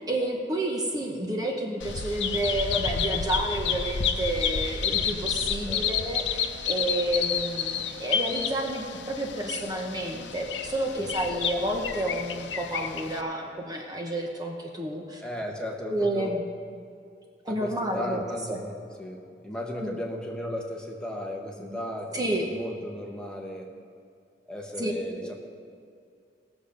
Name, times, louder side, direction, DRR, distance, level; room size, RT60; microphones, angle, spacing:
voice 1, 0.1-15.2 15.9-16.4 17.4-18.6 19.8-20.0 21.6-21.8 22.1-22.5 24.8-24.9 25.2-25.3, right 1 dB, 20° right, 1 dB, 1.0 m, -30 dB
Bird vocalization bird call bird song, 1.8-13.2, left 7 dB, 80° left, 0.7 m, -30 dB
voice 2, 5.7-6.0 10.9-11.2 15.2-16.3 17.5-19.2 19.4-23.7 24.5-25.3, equal, 5° left, 0 dB, 1.1 m, -36 dB
17.5 x 7.1 x 5.2 m, 2.4 s
head